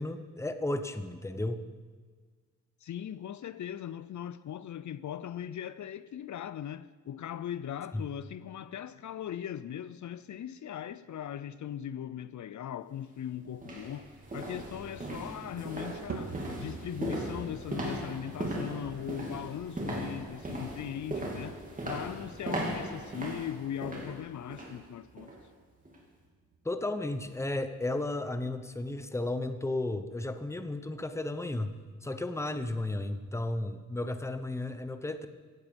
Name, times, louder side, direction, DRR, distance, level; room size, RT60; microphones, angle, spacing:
voice 1, 0.0-1.6 26.6-31.8 32.0-35.3, left 2 dB, 10° left, 0.9 m, -34 dB
voice 2, 2.8-21.6 21.9-25.3, left 10 dB, 70° left, 0.6 m, -39 dB
sound 1, 12.9-13.0 13.5-24.8 25.2-25.4 25.9-26.0, right 1 dB, 25° right, 3.3 m, -38 dB
sound 2, 16.1-32.5, right 4 dB, 55° right, 1.7 m, -50 dB
16.5 x 16.0 x 5.3 m
wide cardioid pair, 165°, 31 cm